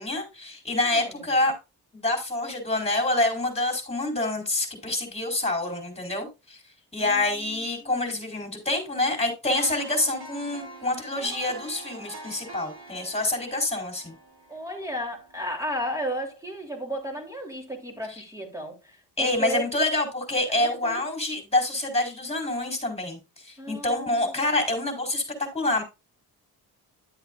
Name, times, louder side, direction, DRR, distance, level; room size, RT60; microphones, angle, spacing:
voice 1, 0.0-1.5 1.9-6.6 6.9-14.2 19.2-25.8, left 2 dB, 15° left, 4.3 m, -27 dB
voice 2, 0.8-1.3 7.0-8.0 14.5-19.6 20.6-21.0 23.6-24.4, equal, 10° right, 3.4 m, -34 dB
sound 1, 9.4-15.5 15.9-16.0, right 3 dB, 65° right, 2.9 m, -44 dB
11.5 x 7.9 x 2.5 m
cardioid pair, 85°, 41 cm